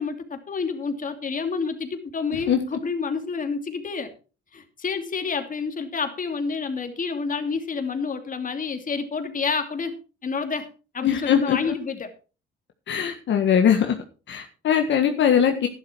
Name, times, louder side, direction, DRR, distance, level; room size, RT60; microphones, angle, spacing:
voice 1, 0.0-4.1 4.5-9.9 10.2-10.7 10.9-12.1, left 5 dB, 40° left, 7 dB, 2.7 m, -29 dB
voice 2, 11.0-11.7 12.9-14.0 14.3-15.7, left 8 dB, 65° left, 5 dB, 1.6 m, -21 dB
12.0 x 11.0 x 4.6 m, 0.35 s
cardioid pair, 90°, 20 cm